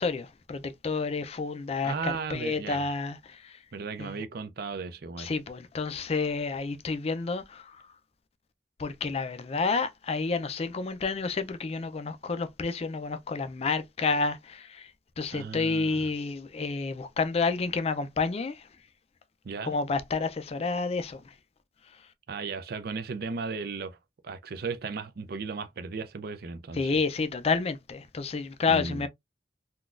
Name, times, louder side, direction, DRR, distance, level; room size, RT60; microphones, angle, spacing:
voice 1, 0.0-3.5 4.0-4.1 5.2-7.8 8.8-14.9 15.2-18.6 19.6-21.2 26.8-29.1, left 4 dB, 35° left, 0.4 m, -30 dB
voice 2, 1.8-2.9 3.7-5.3 15.3-16.1 19.4-19.8 22.3-24.0 24.2-27.0 28.7-29.1, right 4 dB, 55° right, 0.4 m, -36 dB
3.8 x 2.3 x 2.4 m
head